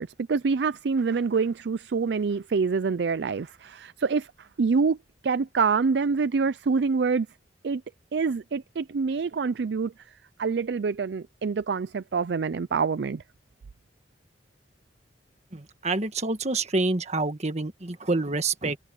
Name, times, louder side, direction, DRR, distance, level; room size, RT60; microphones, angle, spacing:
voice 1, 0.0-5.0 5.2-7.3 7.6-7.8 8.1-9.9 10.4-13.2, right 5 dB, 65° right, 0.4 m, -26 dB
voice 2, 15.5-18.8, right 3 dB, 40° right, 1.6 m, -27 dB
head